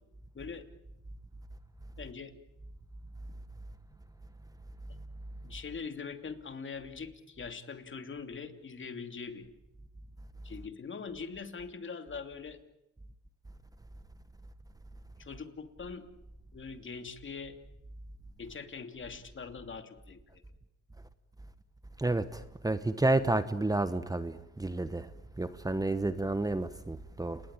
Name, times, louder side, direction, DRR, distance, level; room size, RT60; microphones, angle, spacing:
voice 1, 2.0-2.3 5.4-9.5 10.4-12.6 15.2-16.0 16.5-17.5 18.4-20.4 26.1-26.2, left 5 dB, 40° left, 2.9 m, -42 dB
voice 2, 22.0-25.1 25.4-27.4, right 2 dB, 10° right, 1.2 m, -30 dB
30.0 x 19.5 x 9.0 m
cardioid pair, 90°, 30 cm